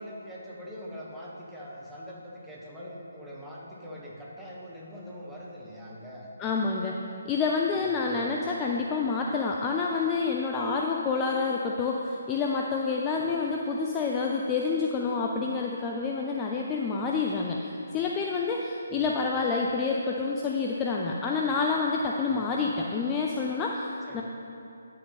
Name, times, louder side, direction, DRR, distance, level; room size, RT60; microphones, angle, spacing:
voice 1, 0.0-6.3 7.8-8.2 13.2-13.3 18.9-19.1 22.3-22.4 24.1-24.2, equal, 5° right, -6 dB, 1.2 m, -43 dB
voice 2, 6.4-7.0 7.2-23.9 24.1-24.2, left 4 dB, 15° left, -1 dB, 0.4 m, -28 dB
9.8 x 6.4 x 4.1 m, 2.8 s
figure-of-eight pair, 145°, 0 cm